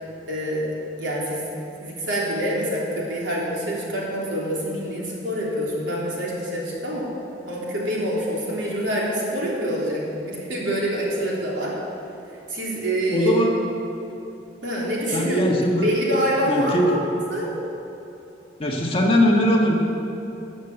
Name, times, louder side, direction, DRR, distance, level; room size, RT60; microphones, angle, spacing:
voice 1, 0.3-1.5 1.8-7.1 7.5-11.8 12.5-13.3 14.6-15.4 15.8-16.9 17.3-17.5, equal, 75° right, -5 dB, 3.5 m, -26 dB
voice 2, 13.1-13.6 15.1-15.9 16.5-17.0 18.6-19.7, equal, 30° left, -1 dB, 1.6 m, -20 dB
13.5 x 8.0 x 8.0 m, 2.9 s
head